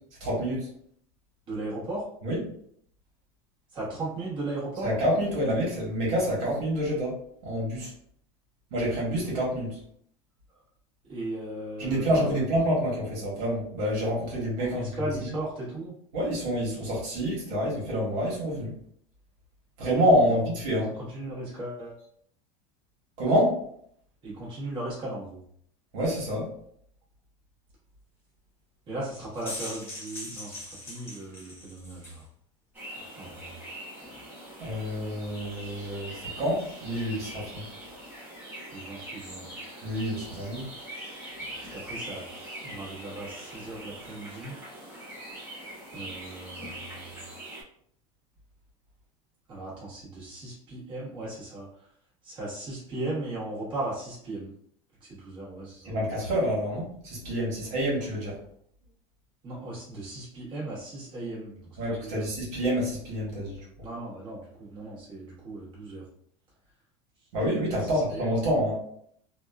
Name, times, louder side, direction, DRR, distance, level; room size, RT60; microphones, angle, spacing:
voice 1, 0.2-0.7 2.2-2.4 4.8-7.9 8.7-9.8 11.8-15.0 16.1-18.7 19.8-20.9 23.2-23.6 25.9-26.5 34.6-37.6 39.8-40.6 55.8-58.3 61.8-63.6 67.3-68.7, equal, 70° right, -4 dB, 1.3 m, -27 dB
voice 2, 1.5-2.1 3.7-4.9 11.0-12.4 14.6-16.0 20.3-20.5 20.8-21.9 24.2-25.4 28.9-32.3 33.1-33.5 38.7-39.5 41.6-42.3 42.6-44.5 45.9-47.3 49.5-51.9 52.2-54.5 55.0-56.0 59.4-62.2 63.8-66.1 67.8-68.3, right 2 dB, 30° right, -7 dB, 1.3 m, -37 dB
sound 1, 29.2-32.2, left 1 dB, 15° left, 0.9 m, -40 dB
sound 2, 32.7-47.6, right 1 dB, 10° right, 0.8 m, -42 dB
2.9 x 2.3 x 2.3 m, 0.65 s
supercardioid pair, 145°, 16 cm